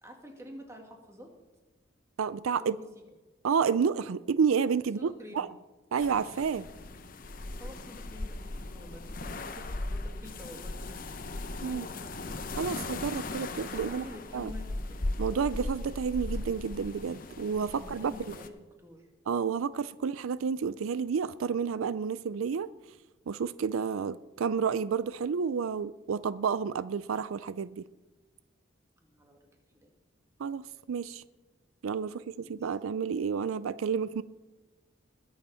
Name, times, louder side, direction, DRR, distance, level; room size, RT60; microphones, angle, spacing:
voice 1, 0.0-1.3 2.6-2.8 5.0-5.5 7.6-11.1 11.6-11.9 13.7-15.0 17.8-19.1 19.5-19.6 29.0-29.4 29.7-29.9 32.4-32.7, left 1 dB, 15° right, 2.1 m, -48 dB
voice 2, 2.2-2.7 3.4-5.5 5.9-6.7 11.6-11.9 12.6-14.0 14.3-14.5 15.2-18.1 19.3-22.7 23.3-27.8 30.4-31.2 31.8-34.2, right 6 dB, 90° right, 0.4 m, -30 dB
sound 1, 6.0-18.5, left 2 dB, 45° left, 0.8 m, -38 dB
21.0 x 7.2 x 5.6 m
head